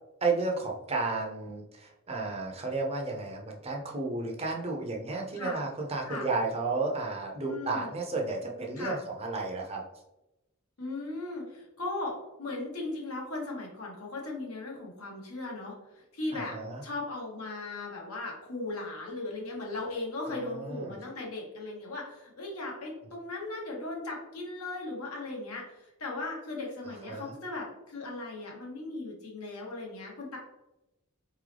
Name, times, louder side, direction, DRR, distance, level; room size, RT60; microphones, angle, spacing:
voice 1, 0.2-9.8 16.3-16.8 20.3-21.0 27.0-27.3, right 3 dB, 30° right, 0 dB, 0.7 m, -33 dB
voice 2, 7.4-7.9 8.8-9.0 10.8-16.6 16.8-30.4, left 2 dB, 75° left, -2 dB, 1.4 m, -37 dB
4.2 x 3.7 x 3.3 m, 0.95 s
head